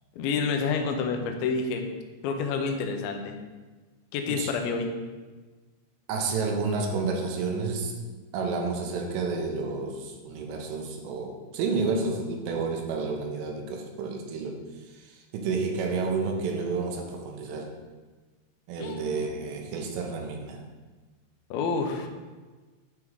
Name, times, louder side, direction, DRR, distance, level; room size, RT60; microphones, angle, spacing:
voice 1, 0.2-1.9 2.2-3.4 4.1-4.9 18.8-19.1 21.5-22.1, left 5 dB, 85° left, 4 dB, 2.2 m, -28 dB
voice 2, 6.1-7.9 8.3-14.6 14.9-17.7 18.7-20.6, right 4 dB, 85° right, 1 dB, 2.9 m, -30 dB
8.0 x 3.6 x 4.6 m, 1.3 s
omnidirectional pair, 5.1 m